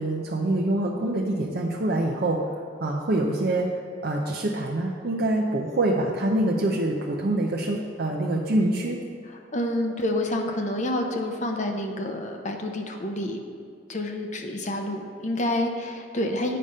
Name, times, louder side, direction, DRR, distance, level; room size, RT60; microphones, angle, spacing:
voice 1, 0.0-2.5 2.8-9.0, right 1 dB, 55° right, 0 dB, 0.6 m, -25 dB
voice 2, 9.5-13.4 13.9-16.6, left 1 dB, 40° left, 4 dB, 0.7 m, -28 dB
8.7 x 5.0 x 5.4 m, 2.3 s
head